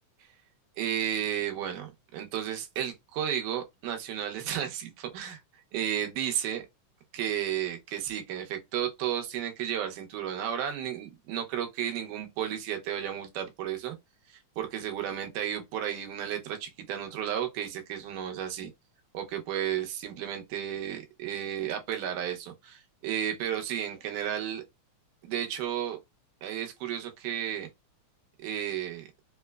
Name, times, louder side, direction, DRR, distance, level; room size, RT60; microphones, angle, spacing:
voice 1, 0.8-5.4 5.7-6.6 7.1-14.0 14.3-18.7 19.1-24.6 25.2-26.0 26.4-27.7 28.4-29.1, right 10 dB, 90° right, 2.4 m, -33 dB
5.5 x 2.2 x 2.2 m
omnidirectional pair, 3.5 m